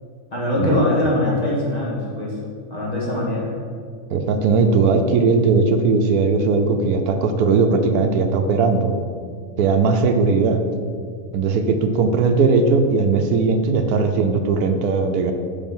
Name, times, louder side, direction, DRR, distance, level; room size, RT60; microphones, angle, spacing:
voice 1, 0.3-2.3 2.7-3.5, left 1 dB, 25° left, -6 dB, 2.0 m, -22 dB
voice 2, 4.1-8.9 9.6-10.6 11.3-15.3, right 4 dB, 85° right, 6 dB, 1.2 m, -18 dB
6.9 x 5.7 x 5.5 m, 2.1 s
omnidirectional pair, 1.6 m